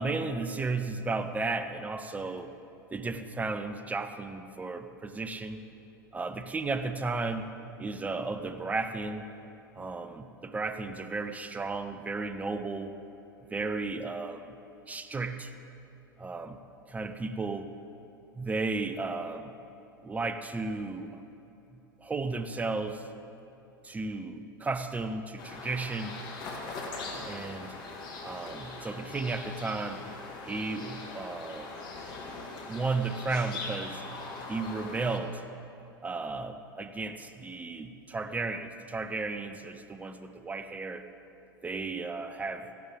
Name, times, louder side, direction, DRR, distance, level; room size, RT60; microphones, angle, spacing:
voice 1, 0.0-2.5 2.9-5.6 6.1-7.5 7.8-9.3 9.7-13.0 13.5-14.6 14.9-15.5 16.2-16.6 16.9-17.7 18.4-19.5 20.0-21.2 21.7-23.0 23.8-26.2 27.3-27.7 28.2-30.0 30.5-31.7 32.7-34.0 34.5-35.4 36.0-41.1 41.6-42.7, right 3 dB, 15° right, 9 dB, 0.7 m, -34 dB
sound 1, 25.4-35.2, left 3 dB, 40° left, 1.8 m, -41 dB
14.5 x 12.0 x 3.6 m, 2.9 s
figure-of-eight pair, 80°, 11 cm